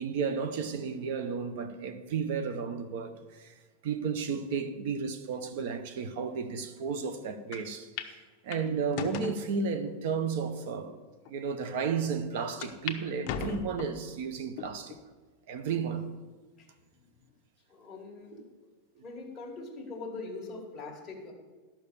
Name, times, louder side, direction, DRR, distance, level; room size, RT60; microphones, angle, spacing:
voice 1, 0.0-3.5 3.8-11.0 11.3-15.0 15.5-16.1 19.0-19.1, right 5 dB, 55° right, 0.9 m, -33 dB
sound 1, 7.5-7.6 8.0-8.1 8.5-9.4 10.1-10.2 10.9-11.0 11.2-11.3 12.6-13.0 13.2-14.0 14.6-15.0 15.6-15.7 16.8-17.2, left 9 dB, 40° left, 0.8 m, -38 dB
voice 2, 17.7-18.4 19.0-21.3, left 3 dB, 15° left, 1.8 m, -42 dB
12.0 x 6.0 x 6.9 m
supercardioid pair, 170°, 0 cm